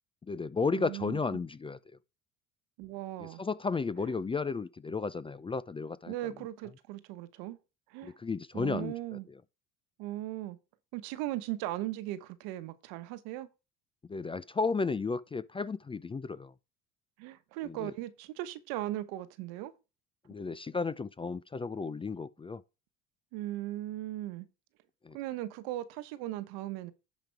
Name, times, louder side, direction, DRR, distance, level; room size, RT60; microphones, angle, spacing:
voice 1, 0.2-1.8 3.2-6.1 8.0-8.9 9.3-9.4 14.1-16.5 17.6-17.9 20.3-22.6 25.0-25.2, left 4 dB, 15° left, 0.4 m, -33 dB
voice 2, 0.7-1.2 2.8-3.4 6.1-7.6 7.9-8.2 8.5-9.3 10.0-10.6 10.9-13.5 17.2-19.7 23.3-24.5 25.1-26.9, right 15 dB, 85° right, 1.2 m, -38 dB
10.5 x 5.2 x 4.6 m
supercardioid pair, 100°, 35 cm